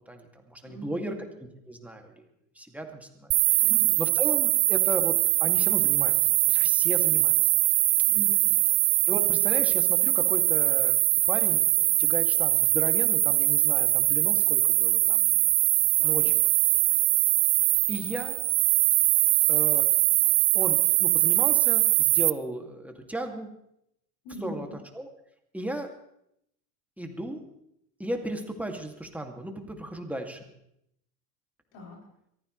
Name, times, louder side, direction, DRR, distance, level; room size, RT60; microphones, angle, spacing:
voice 1, 0.1-2.1 2.5-3.6 4.0-6.2 6.5-7.3 9.1-11.0 11.3-15.4 16.0-16.5 17.9-18.4 19.5-19.9 20.5-23.5 24.4-24.7 24.9-25.1 25.5-25.9 27.0-27.4 28.0-30.5, right 1 dB, 5° right, 3 dB, 2.6 m, -35 dB
voice 2, 0.6-1.3 3.6-4.0 8.1-8.6 16.0-16.3 24.2-24.8 31.7-32.0, equal, 65° left, -1 dB, 7.4 m, -42 dB
sound 1, 3.3-22.3, right 27 dB, 65° right, 0.6 m, -22 dB
23.0 x 15.0 x 3.3 m, 0.77 s
hypercardioid pair, 90°, 44 cm